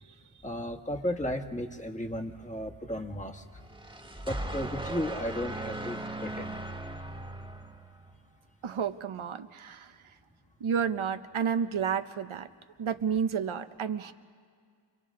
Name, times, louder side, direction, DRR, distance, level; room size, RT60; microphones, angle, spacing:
voice 1, 0.4-3.4 4.2-6.5, left 1 dB, 15° left, 3 dB, 1.5 m, -34 dB
sound 1, 3.6-8.2, right 1 dB, 10° right, 1.6 m, -38 dB
voice 2, 8.6-9.9 10.6-12.5 12.8-14.1, right 7 dB, 75° right, 9 dB, 0.8 m, -31 dB
28.5 x 24.5 x 3.7 m, 2.1 s
cardioid pair, 45°, 49 cm